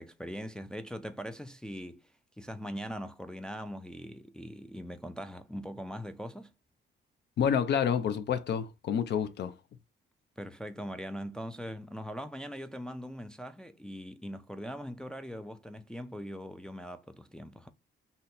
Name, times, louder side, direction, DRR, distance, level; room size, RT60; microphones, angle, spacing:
voice 1, 0.0-2.0 2.4-6.5 10.4-17.7, equal, 5° left, 0.3 m, -41 dB
voice 2, 7.4-9.5, left 8 dB, 60° left, 0.5 m, -28 dB
2.7 x 2.2 x 3.9 m
cardioid pair, 90°, 20 cm